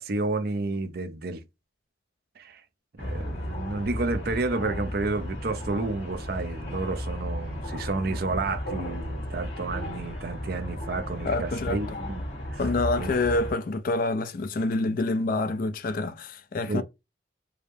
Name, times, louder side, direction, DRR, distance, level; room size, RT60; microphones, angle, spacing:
voice 1, 0.0-1.4 2.4-2.6 3.0-12.2 12.5-12.6 13.0-13.1 16.7-16.8, right 3 dB, 55° right, 0.6 m, -31 dB
sound 1, 3.0-13.5, equal, 85° left, 2.5 m, -34 dB
voice 2, 11.2-12.0 12.6-16.8, left 2 dB, 50° left, 0.4 m, -27 dB
4.9 x 2.0 x 3.2 m
head